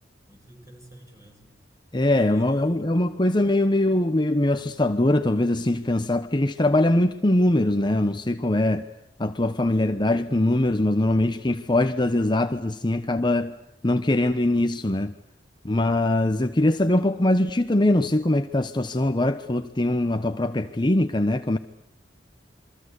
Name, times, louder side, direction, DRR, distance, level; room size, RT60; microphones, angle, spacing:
voice 1, 0.3-1.5 2.0-2.8, right 1 dB, 15° right, 8.0 m, -50 dB
voice 2, 1.9-8.9 9.2-13.5 13.8-15.1 15.6-21.6, left 1 dB, 25° left, 1.0 m, -22 dB
28.0 x 23.5 x 8.2 m
head